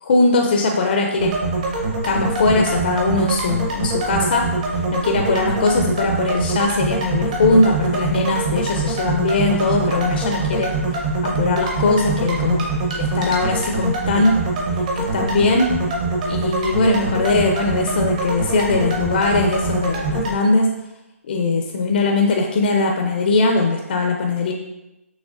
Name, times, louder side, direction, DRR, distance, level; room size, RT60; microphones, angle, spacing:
voice 1, 0.0-1.3 2.0-4.5 4.9-10.7 11.2-12.7 12.9-14.3 15.0-15.7 16.3-20.7 21.3-24.5, left 3 dB, 40° left, 2 dB, 0.4 m, -20 dB
sound 1, 1.2-20.3, right 3 dB, 30° right, 0.8 m, -24 dB
6.2 x 3.1 x 2.4 m, 0.96 s
hypercardioid pair, 165°, 8 cm